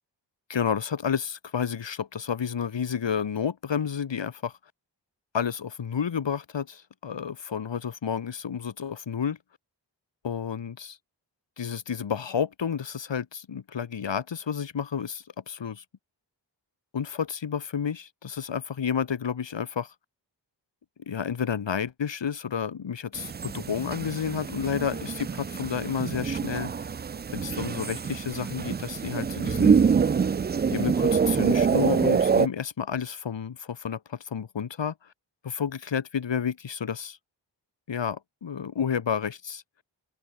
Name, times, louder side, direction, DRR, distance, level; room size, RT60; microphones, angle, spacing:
voice 1, 0.5-4.6 5.3-9.4 10.2-11.0 11.6-15.8 16.9-19.9 21.1-26.7 27.3-29.8 30.7-34.9 35.4-37.2 37.9-39.6, left 7 dB, 70° left, 1.7 m, -30 dB
sound 1, 23.1-32.5, right 6 dB, 25° right, 0.3 m, -25 dB
cardioid pair, 45°, 45 cm